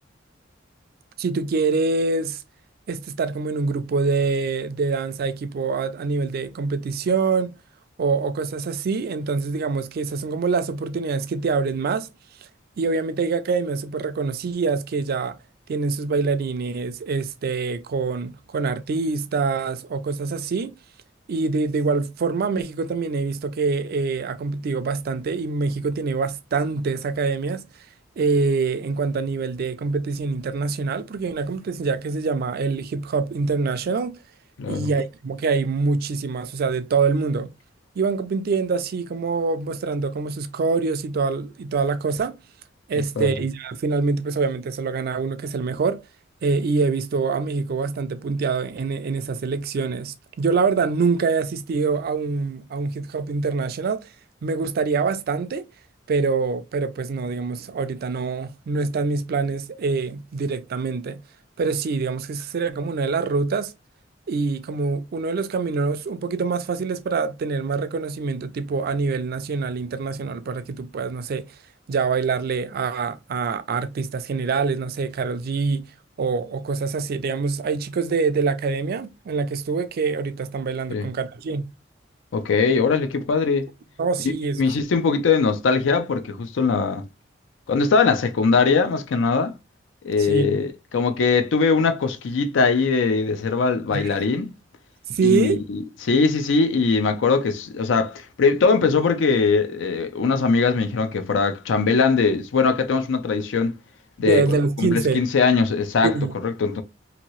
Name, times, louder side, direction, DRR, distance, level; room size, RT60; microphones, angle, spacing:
voice 1, 1.2-2.4 2.9-7.5 8.0-12.1 12.8-15.4 15.7-20.8 21.3-27.6 28.2-34.2 34.7-37.5 38.0-42.4 42.9-46.0 46.4-54.0 54.4-55.7 56.1-61.2 61.6-63.7 64.3-71.5 71.9-75.9 76.2-81.6 84.0-84.6 90.2-90.6 93.9-94.1 95.1-95.6 104.2-105.2 106.0-106.3, right 4 dB, 55° right, 0.4 m, -25 dB
voice 2, 82.3-83.7 84.6-87.0 87.7-89.5 90.0-94.5 95.2-103.7 104.2-104.5 104.8-106.1 106.4-106.8, left 4 dB, 70° left, 0.4 m, -21 dB
2.8 x 2.7 x 2.9 m
head